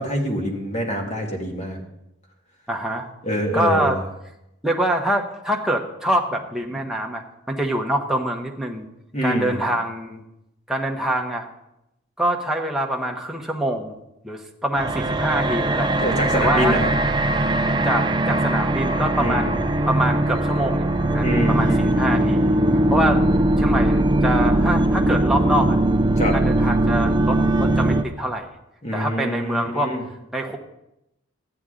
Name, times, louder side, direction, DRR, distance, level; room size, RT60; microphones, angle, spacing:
voice 1, 0.0-1.8 3.2-3.9 9.1-9.6 16.0-16.9 19.2-19.6 21.2-22.8 26.2-26.4 28.8-30.0, equal, 30° left, 1 dB, 1.8 m, -25 dB
voice 2, 2.7-3.1 3.5-4.0 4.6-8.9 9.2-10.2 10.7-11.5 12.2-13.9 14.2-15.9 16.3-16.7 17.8-19.6 19.8-22.5 22.9-23.2 23.6-25.8 26.3-28.5 28.9-29.9 30.3-30.6, right 1 dB, ahead, 0 dB, 0.9 m, -25 dB
sound 1, 14.8-28.0, right 1 dB, 20° right, 0.4 m, -20 dB
13.5 x 9.6 x 3.8 m, 0.86 s
head